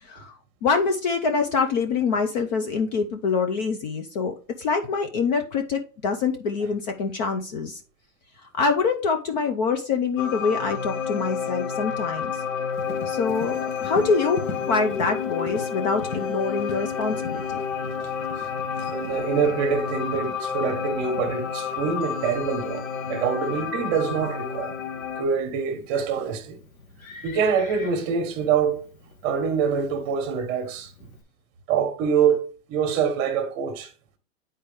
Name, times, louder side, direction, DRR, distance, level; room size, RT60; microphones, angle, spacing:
voice 1, 0.6-7.8 8.6-12.3 13.1-17.6, left 5 dB, 35° left, 0.5 m, -25 dB
sound 1, 10.2-25.2, left 6 dB, 70° left, 1.0 m, -30 dB
Livestock farm animals working animals, 12.7-31.2, left 3 dB, 90° left, 1.7 m, -44 dB
voice 2, 18.8-24.7 25.2-26.6 27.2-28.8 29.2-30.9 31.7-32.4 32.7-33.9, right 6 dB, 30° right, 1.3 m, -25 dB
8.6 x 4.3 x 3.5 m
hypercardioid pair, 145°, 41 cm